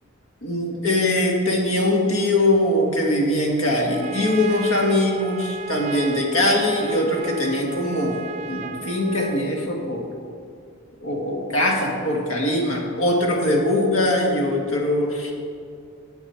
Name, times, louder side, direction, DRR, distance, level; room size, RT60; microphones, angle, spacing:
voice 1, 0.4-10.1 11.0-15.3, left 1 dB, 75° left, 0 dB, 1.7 m, -22 dB
Trumpet, 3.6-9.6, right 4 dB, 30° right, 0.5 m, -35 dB
11.5 x 8.2 x 4.4 m, 2.4 s
head